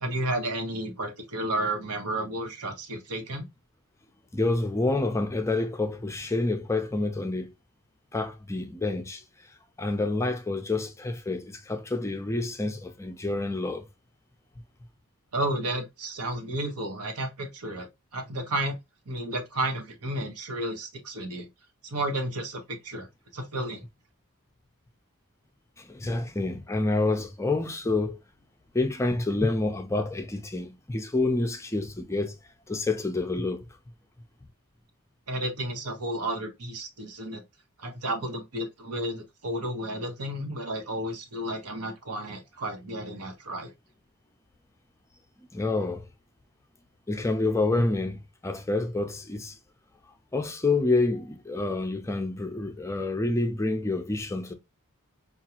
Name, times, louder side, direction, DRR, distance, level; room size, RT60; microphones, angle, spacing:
voice 1, 0.0-3.5 15.3-18.8 19.1-21.5 21.8-23.1 23.3-23.8 35.3-37.4 37.8-43.7, right 1 dB, 85° right, 1.1 m, -32 dB
voice 2, 4.3-7.5 8.1-9.2 9.8-13.9 25.8-28.2 28.7-32.4 32.7-33.6 45.5-46.1 47.1-49.6 50.3-54.5, left 2 dB, 15° left, 0.4 m, -28 dB
4.9 x 2.4 x 2.8 m
head